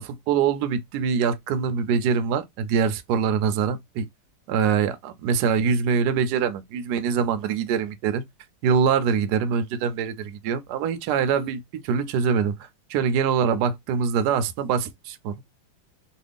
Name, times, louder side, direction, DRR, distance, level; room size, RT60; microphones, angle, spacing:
voice 1, 0.0-4.1 4.5-8.2 8.6-12.5 12.9-15.4, right 6 dB, 70° right, 1.1 m, -24 dB
3.2 x 2.4 x 3.3 m
omnidirectional pair, 2.0 m